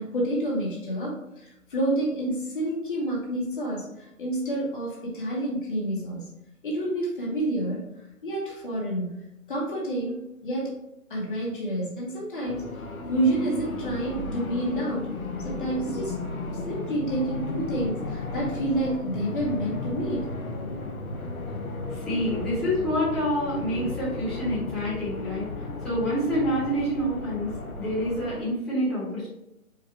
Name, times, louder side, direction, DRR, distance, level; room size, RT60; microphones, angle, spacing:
voice 1, 0.0-6.2 6.6-7.9 8.2-10.7 11.1-12.6 13.1-16.2 16.7-20.3, right 1 dB, 35° left, -4 dB, 1.1 m, -29 dB
sound 1, 12.5-28.4, left 3 dB, 75° left, 1.0 m, -34 dB
voice 2, 21.9-27.5 27.8-29.3, equal, ahead, -12 dB, 1.2 m, -27 dB
4.9 x 2.3 x 4.5 m, 0.87 s
figure-of-eight pair, 145°, 43 cm